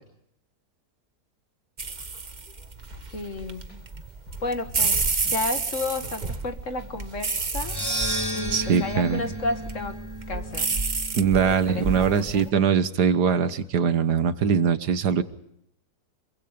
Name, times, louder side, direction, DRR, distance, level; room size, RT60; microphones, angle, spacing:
sound 1, 1.8-12.5, right 4 dB, 30° right, 1.3 m, -30 dB
sound 2, 2.9-3.3 3.7-3.8 4.1-6.9 7.2-8.5 8.7-8.8, left 1 dB, 70° left, 5.7 m, -47 dB
voice 1, 3.1-3.6 4.4-5.0 5.3-7.8 8.3-10.0 10.3-10.8 11.5-12.4, left 3 dB, 50° left, 7 dB, 2.2 m, -32 dB
sound 3, 7.6-11.9, right 1 dB, 15° left, 4.8 m, -33 dB
voice 2, 8.5-9.3 11.2-15.2, right 7 dB, 85° right, 12 dB, 1.8 m, -22 dB
27.0 x 23.5 x 5.2 m, 0.77 s
omnidirectional pair, 1.7 m